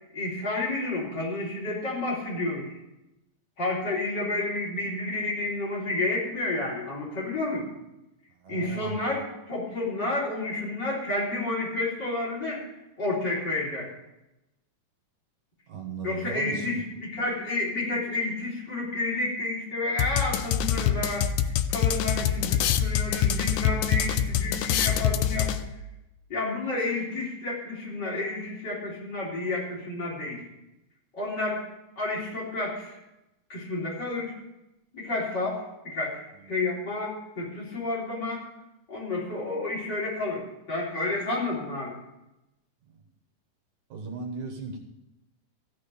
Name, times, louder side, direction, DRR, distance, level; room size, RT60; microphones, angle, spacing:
voice 1, 0.1-2.8 3.6-7.6 8.5-12.6 13.0-13.9 16.0-25.5 26.3-30.4 31.1-31.6 32.0-33.0 33.5-34.3 34.9-38.4 38.9-42.0, left 2 dB, 30° left, -6 dB, 4.1 m, -30 dB
voice 2, 8.4-9.1 15.7-16.8 43.9-44.8, right 4 dB, 65° right, 3 dB, 2.8 m, -37 dB
sound 1, 20.0-25.9, left 9 dB, 90° left, 2.3 m, -25 dB
15.0 x 6.5 x 6.9 m, 0.93 s
omnidirectional pair, 3.8 m